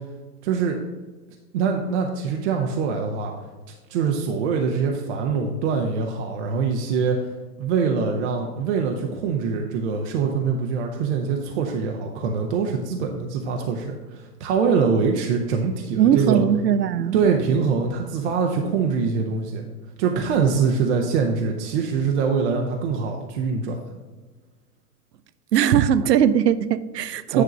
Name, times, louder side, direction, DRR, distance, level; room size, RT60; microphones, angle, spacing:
voice 1, 0.4-0.8 1.5-3.3 3.9-7.3 7.6-16.4 17.1-19.7 20.0-23.8 27.3-27.4, right 5 dB, 40° right, 0.9 m, -23 dB
voice 2, 16.0-17.2 25.5-27.4, right 9 dB, 75° right, 0.6 m, -19 dB
9.7 x 3.6 x 5.2 m
figure-of-eight pair, 110°, 50 cm